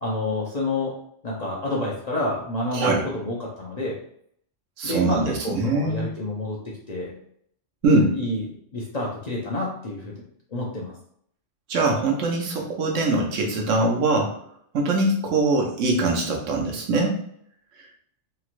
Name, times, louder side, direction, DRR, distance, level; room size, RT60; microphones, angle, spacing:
voice 1, 0.0-0.9 1.2-4.0 4.8-7.2 7.9-8.4 8.7-10.2 10.5-11.0, left 2 dB, 50° left, -4 dB, 0.5 m, -29 dB
voice 2, 4.8-6.1 7.8-8.1 11.7-14.3 14.7-17.2, right 2 dB, 85° right, 0 dB, 1.1 m, -22 dB
3.1 x 2.8 x 2.5 m, 0.67 s
omnidirectional pair, 1.3 m